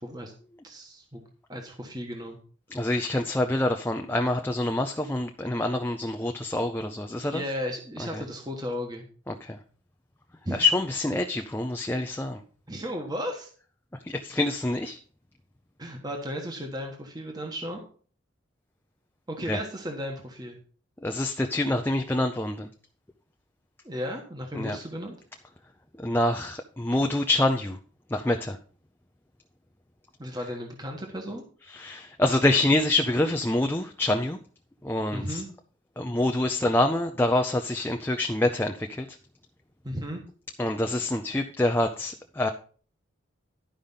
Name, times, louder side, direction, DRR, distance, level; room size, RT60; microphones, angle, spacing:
voice 1, 0.0-0.3 0.6-1.2 1.5-2.4 7.3-9.1 10.4-10.6 12.7-13.5 15.8-17.8 19.3-20.6 23.8-25.2 30.2-31.4 35.1-35.5 39.8-40.2, equal, 20° right, 2 dB, 1.2 m, -35 dB
voice 2, 2.7-7.4 8.1-8.2 9.3-9.6 10.5-12.4 14.0-15.0 19.5-19.6 21.0-22.7 24.6-24.8 26.0-27.8 28.1-28.6 31.7-34.4 34.8-35.4 36.0-39.1 40.6-42.5, left 1 dB, 10° left, 5 dB, 0.5 m, -26 dB
11.5 x 5.2 x 5.6 m, 0.43 s
head